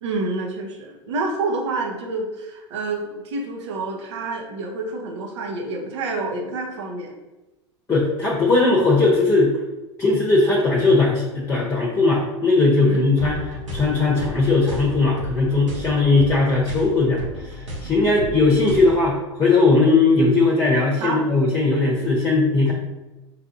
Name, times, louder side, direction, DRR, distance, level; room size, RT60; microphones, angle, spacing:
voice 1, 0.0-7.1 12.8-13.0 21.0-21.2, right 3 dB, 65° right, 0 dB, 0.9 m, -28 dB
voice 2, 7.9-9.5 10.0-22.7, left 3 dB, 20° left, -3 dB, 0.9 m, -19 dB
sound 1, 13.1-19.0, equal, 85° right, 1.2 m, -34 dB
5.6 x 2.6 x 2.6 m, 1.1 s
hypercardioid pair, 85°, 16 cm